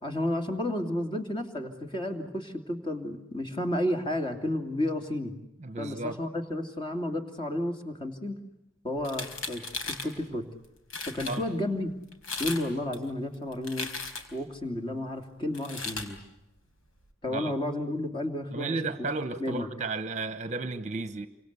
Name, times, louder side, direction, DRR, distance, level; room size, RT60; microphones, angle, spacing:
voice 1, 0.0-5.3 5.8-8.4 8.8-10.5 11.1-11.9 12.4-13.9 14.3-16.2 17.2-19.1 19.4-19.7, left 1 dB, 25° left, 5 dB, 2.8 m, -32 dB
voice 2, 5.6-6.2 11.3-11.4 17.3-17.5 18.5-21.3, right 3 dB, 35° right, 10 dB, 1.1 m, -33 dB
sound 1, 9.0-10.1 10.6-10.7 10.9-11.4 12.1-12.6 12.9-14.4 15.5-16.1, left 4 dB, 90° left, 4.3 m, -36 dB
28.5 x 25.5 x 8.2 m, 0.89 s
head